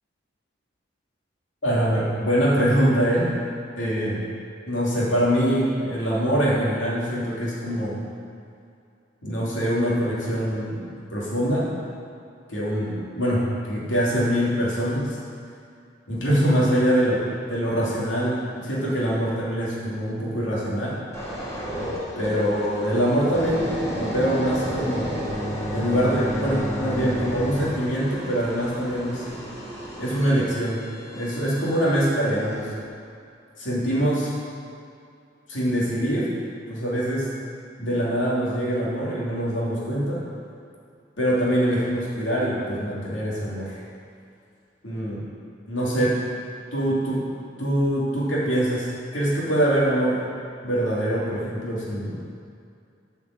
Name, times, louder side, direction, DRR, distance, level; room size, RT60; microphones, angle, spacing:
voice 1, 1.6-3.3 3.8-4.2 4.7-8.0 9.2-11.7 12.5-15.1 16.1-21.0 22.2-25.2 25.7-29.3 30.0-30.8 31.1-32.7 33.6-34.3 35.5-36.2 36.7-37.3 37.8-40.2 41.2-43.8 44.8-45.2 45.7-46.1 46.7-47.3 47.6-50.2 50.6-52.2, equal, 85° left, -6 dB, 2.9 m, -24 dB
sound 1, 21.1-32.1 32.6-32.8, equal, 15° left, 1.8 m, -32 dB
8.9 x 5.8 x 7.6 m, 2.4 s
head